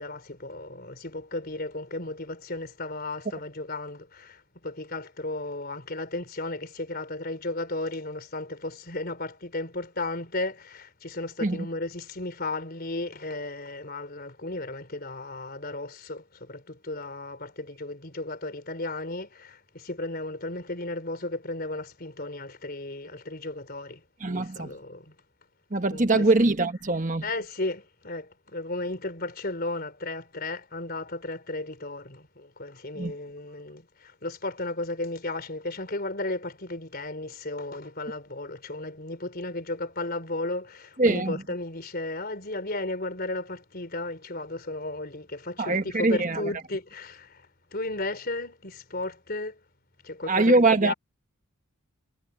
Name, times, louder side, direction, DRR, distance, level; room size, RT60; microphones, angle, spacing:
voice 1, 0.0-24.0 24.3-25.2 25.9-26.3 27.2-49.6 50.0-50.6 50.8-50.9, left 2 dB, 45° left, 4.0 m, -34 dB
voice 2, 24.2-24.7 25.7-27.2 33.0-33.1 41.0-41.4 45.6-46.4 50.3-50.9, right 2 dB, 35° right, 1.3 m, -22 dB
head